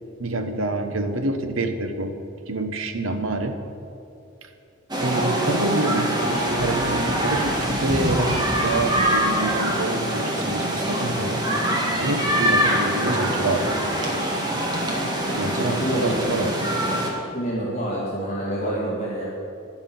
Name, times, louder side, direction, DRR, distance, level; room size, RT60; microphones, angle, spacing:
voice 1, 0.2-2.1 2.5-3.6 4.4-4.5 5.0-11.5 12.0-14.6 15.3-16.6, right 2 dB, 80° right, 7 dB, 1.1 m, -27 dB
sound 1, 4.9-17.1, right 1 dB, 20° right, 1.6 m, -24 dB
voice 2, 15.8-16.2 17.3-19.3, right 1 dB, 30° left, -6 dB, 2.1 m, -27 dB
12.5 x 6.0 x 9.3 m, 2.7 s
head